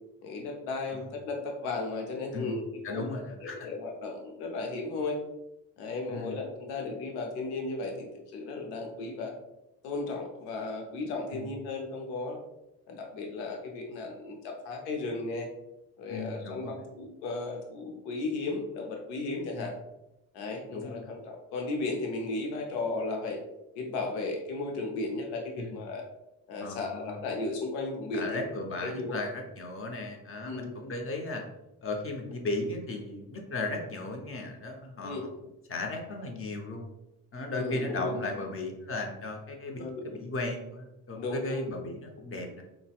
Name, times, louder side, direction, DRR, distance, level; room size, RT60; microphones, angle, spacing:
voice 1, 0.2-3.1 3.4-5.2 5.8-9.3 9.8-12.4 12.9-15.5 16.0-19.7 20.3-23.4 23.7-26.0 26.5-28.4 28.8-29.2 30.4-30.8 35.0-35.2 37.5-38.2 39.8-40.2 41.1-41.6, left 3 dB, 80° left, 2 dB, 0.7 m, -35 dB
voice 2, 2.8-3.7 6.1-6.3 11.3-11.5 16.1-16.8 19.5-19.7 20.7-21.2 25.6-25.8 26.6-27.2 28.1-31.4 31.8-35.2 35.7-36.9 37.3-42.6, left 2 dB, 30° left, 3 dB, 0.7 m, -36 dB
3.9 x 2.1 x 2.3 m, 0.90 s
hypercardioid pair, 50°, 46 cm